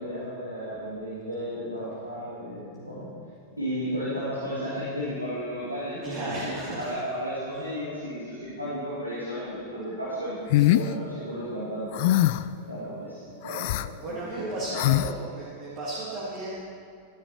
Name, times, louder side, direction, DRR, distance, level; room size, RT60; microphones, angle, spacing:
voice 1, 0.0-3.1 3.6-12.0 12.7-14.8, equal, 90° right, -9 dB, 2.3 m, -34 dB
voice 2, 6.0-6.9 10.6-10.7 14.0-16.5, right 2 dB, 40° right, -8 dB, 2.5 m, -35 dB
sound 1, 10.5-10.9 11.9-12.5 13.4-13.9 14.7-15.1, left 15 dB, 50° left, 0.3 m, -22 dB
14.5 x 12.0 x 2.9 m, 2.2 s
figure-of-eight pair, 90°, 0 cm